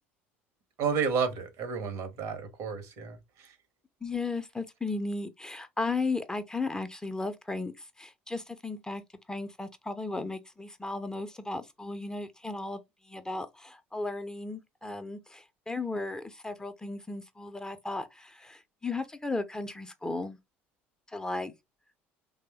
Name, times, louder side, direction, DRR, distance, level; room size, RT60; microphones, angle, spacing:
voice 1, 0.8-3.2, right 6 dB, 55° right, 0.8 m, -31 dB
voice 2, 4.0-9.0 9.3-12.8 13.1-20.4 21.1-21.5, left 3 dB, 10° left, 0.4 m, -35 dB
3.2 x 2.0 x 2.8 m
figure-of-eight pair, 65°, 7 cm